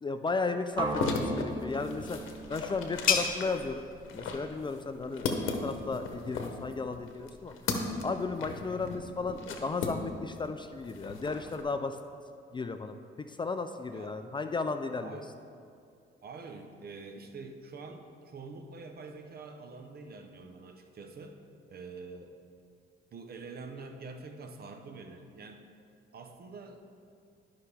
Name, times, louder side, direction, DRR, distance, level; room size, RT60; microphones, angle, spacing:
voice 1, 0.0-2.2 2.5-3.8 4.1-7.5 8.0-12.0 12.5-12.9 13.3-15.2, left 4 dB, 25° left, 8 dB, 0.4 m, -34 dB
sound 1, 0.7-10.5 10.8-11.6, left 4 dB, 85° left, 0.9 m, -37 dB
sound 2, 0.8-4.7, right 2 dB, 25° right, 0.9 m, -38 dB
sound 3, 1.7-7.1, left 6 dB, 45° left, 0.8 m, -36 dB
voice 2, 14.9-15.3 16.2-21.4 21.7-22.4 23.1-25.6 26.1-26.8, right 4 dB, 50° right, 5 dB, 0.8 m, -46 dB
11.5 x 5.7 x 3.4 m, 2.4 s
cardioid pair, 90°, 20 cm